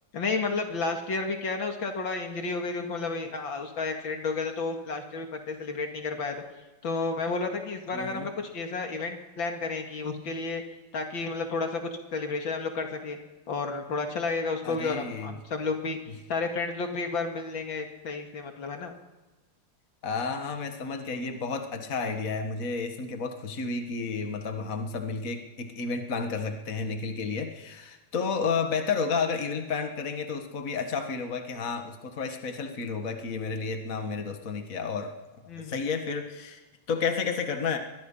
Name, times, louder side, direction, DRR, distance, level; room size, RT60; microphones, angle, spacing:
voice 1, 0.1-6.4 6.8-10.6 10.9-13.2 13.5-16.0 16.3-18.9 35.5-35.8, left 4 dB, 75° left, 4 dB, 2.8 m, -31 dB
voice 2, 7.9-8.3 14.6-15.3 20.0-35.2 35.6-36.6 36.9-37.8, left 5 dB, 45° left, 5 dB, 2.1 m, -31 dB
22.0 x 20.5 x 5.6 m, 1.2 s
omnidirectional pair, 2.2 m